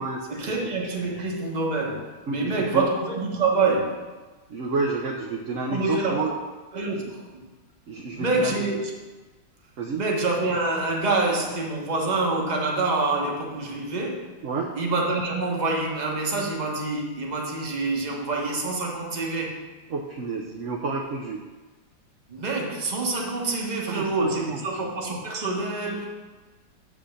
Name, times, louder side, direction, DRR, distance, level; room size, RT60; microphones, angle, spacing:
voice 1, 0.3-4.1 5.7-6.3 6.7-7.5 8.1-8.9 9.9-14.3 14.8-19.7 22.3-26.1, right 3 dB, 25° right, 0 dB, 1.1 m, -26 dB
voice 2, 2.3-2.8 4.5-6.3 6.9-7.1 7.9-8.7 9.8-10.1 14.4-14.7 19.9-21.4 23.6-24.6, right 4 dB, 55° right, 0 dB, 0.9 m, -30 dB
7.0 x 5.3 x 6.4 m, 1.2 s
omnidirectional pair, 2.0 m